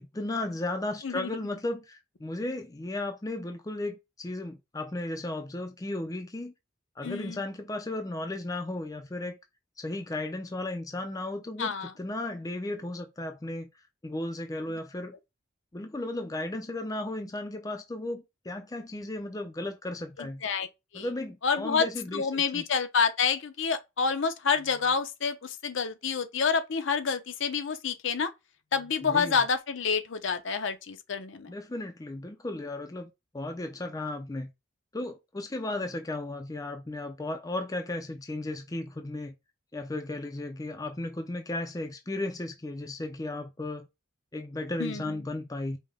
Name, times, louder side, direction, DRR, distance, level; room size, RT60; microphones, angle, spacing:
voice 1, 0.0-6.5 7.0-9.4 9.8-13.7 14.0-15.2 15.7-20.4 20.9-22.6 29.0-29.4 31.5-34.5 34.9-39.3 39.7-43.9 44.3-45.8, left 2 dB, 15° left, 0.4 m, -35 dB
voice 2, 7.0-7.4 11.6-11.9 20.2-20.7 20.9-21.1 21.4-21.9 22.1-28.3 28.7-31.5 44.8-45.2, left 5 dB, 65° left, 0.7 m, -28 dB
5.3 x 2.2 x 3.5 m
head